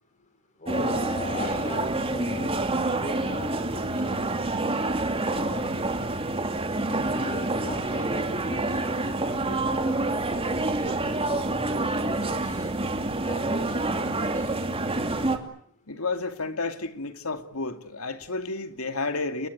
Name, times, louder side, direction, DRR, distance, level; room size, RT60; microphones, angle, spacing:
voice 1, 0.6-2.6 2.9-4.4 5.3-6.0 7.0-10.2 10.7-12.7 13.2-14.5, left 2 dB, 35° left, 5.2 m, -39 dB
sound 1, 0.7-15.4, right 2 dB, 25° right, 2.8 m, -27 dB
voice 2, 15.9-19.5, left 3 dB, 80° left, 2.5 m, -31 dB
29.5 x 20.5 x 8.4 m
head